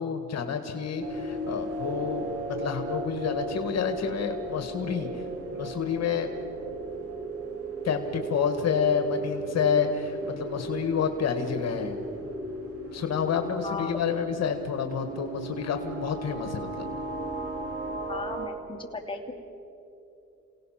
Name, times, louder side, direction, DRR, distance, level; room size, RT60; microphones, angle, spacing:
voice 1, 0.0-5.2 5.5-6.3 7.8-12.0 12.9-16.8, left 7 dB, 60° left, 6 dB, 1.7 m, -29 dB
sound 1, 1.0-18.5, right 2 dB, 50° right, 3.0 m, -36 dB
voice 2, 18.1-19.3, left 4 dB, 15° left, 2 dB, 2.5 m, -36 dB
28.0 x 18.0 x 5.9 m, 2.8 s
cardioid pair, 90°, 30 cm